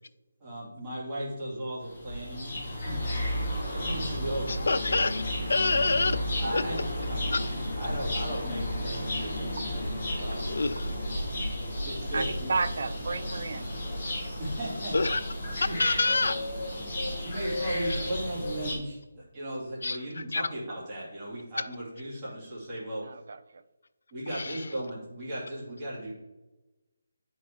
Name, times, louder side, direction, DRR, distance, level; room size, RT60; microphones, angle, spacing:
voice 1, 0.4-2.5 2.8-3.3 3.7-4.5 6.4-6.8 7.1-7.4 7.7-9.6 10.2-10.4 11.7-12.5 14.4-15.0 15.5-15.8 17.1-23.1 24.1-26.1, right 1 dB, 15° right, -9 dB, 2.6 m, -36 dB
sound 1, 1.8-18.7, left 1 dB, 30° left, 2.5 m, -33 dB
voice 2, 4.5-5.2 5.5-6.2 6.5-6.6 7.3-7.4 10.5-10.9 14.9-15.2 15.5-16.4 19.8-20.0 20.3-20.4 24.3-24.6, left 3 dB, 65° left, 13 dB, 0.5 m, -26 dB
voice 3, 12.1-13.7 23.0-23.6, right 4 dB, 50° right, 11 dB, 0.5 m, -32 dB
9.1 x 4.7 x 4.4 m, 1.1 s
hypercardioid pair, 175°, 0 cm